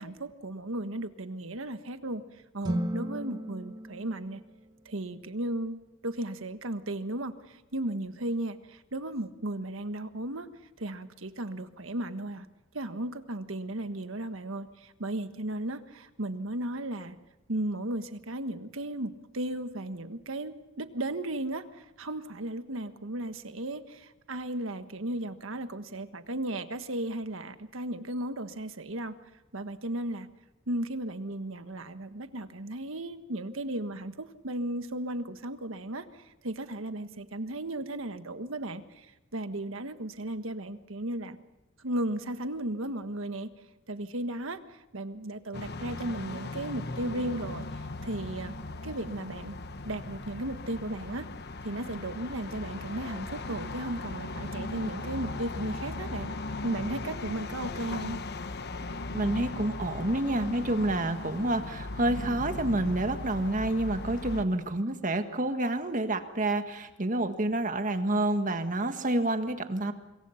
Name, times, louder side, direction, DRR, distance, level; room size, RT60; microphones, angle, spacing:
voice 1, 0.0-2.2 2.5-4.4 4.8-10.5 10.8-12.5 12.7-17.2 17.5-29.1 29.5-30.3 30.7-41.4 41.8-43.5 43.9-47.7 48.0-48.5 48.8-49.6 49.8-51.3 51.6-56.3 56.6-58.2, right 1 dB, 75° right, 10 dB, 1.5 m, -35 dB
sound 1, 2.6-5.0, right 1 dB, 20° right, 1.8 m, -35 dB
sound 2, 45.5-64.5, left 2 dB, 55° left, 1.2 m, -38 dB
Wind, 52.8-57.4, left 2 dB, 85° left, 4.3 m, -47 dB
voice 2, 59.1-69.9, right 1 dB, 40° right, 8 dB, 1.7 m, -28 dB
25.5 x 23.0 x 5.8 m, 1.0 s
head